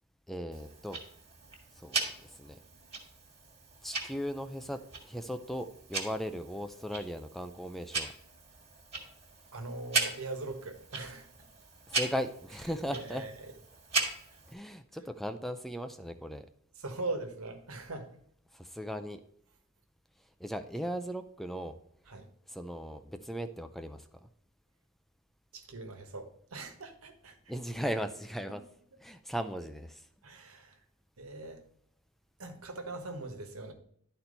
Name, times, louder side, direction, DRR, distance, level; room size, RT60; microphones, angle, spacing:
voice 1, 0.3-1.0 1.8-2.6 3.8-4.8 5.0-8.1 11.9-13.2 14.5-16.5 18.5-19.2 20.4-21.7 22.5-24.3 27.5-28.6 29.0-30.0, equal, ahead, 8 dB, 0.4 m, -37 dB
Tick-tock, 0.5-14.5, right 4 dB, 30° right, 1.8 m, -38 dB
voice 2, 9.5-11.4 12.8-13.5 14.0-14.4 16.7-18.2 22.1-22.3 25.5-27.4 30.2-30.8 31.2-31.6 32.4-33.7, right 2 dB, 85° right, 5 dB, 1.4 m, -41 dB
11.5 x 4.4 x 4.0 m, 0.67 s
head